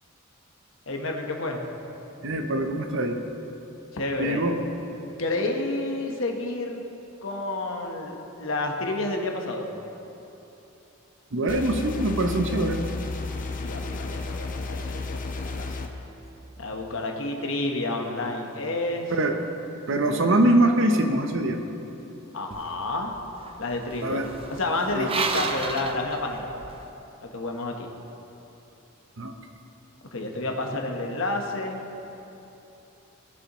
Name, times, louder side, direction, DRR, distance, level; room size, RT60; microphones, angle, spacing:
voice 1, 0.9-1.6 3.9-4.5 5.2-6.8 7.2-9.7 13.6-15.9 16.6-19.1 22.3-23.1 23.6-26.6 27.2-27.9 30.1-31.8, left 2 dB, 65° left, 2 dB, 1.2 m, -30 dB
voice 2, 2.2-3.2 4.2-4.6 11.3-12.8 19.1-19.4 19.9-21.6 24.0-24.3 24.9-25.1 29.2-29.3, right 1 dB, 60° right, 6 dB, 0.8 m, -23 dB
sound 1, 11.5-15.9, left 3 dB, 40° left, 0.7 m, -32 dB
sound 2, 22.5-26.9, right 4 dB, 25° right, 0.4 m, -34 dB
19.0 x 6.9 x 3.1 m, 3.0 s
head